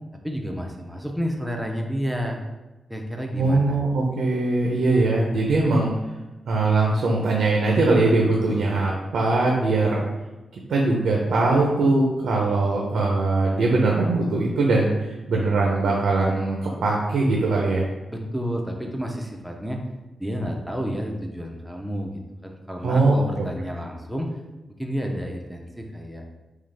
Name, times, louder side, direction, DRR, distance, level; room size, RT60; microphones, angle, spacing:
voice 1, 0.2-2.4 2.9-3.8 18.1-19.8 20.2-24.3 24.8-26.2, equal, 5° right, 1 dB, 0.5 m, -30 dB
voice 2, 3.4-5.9 6.5-10.0 10.7-17.8 22.8-23.1, right 2 dB, 85° right, -1 dB, 0.6 m, -21 dB
3.9 x 3.1 x 3.3 m, 1.1 s
wide cardioid pair, 155°, 0 cm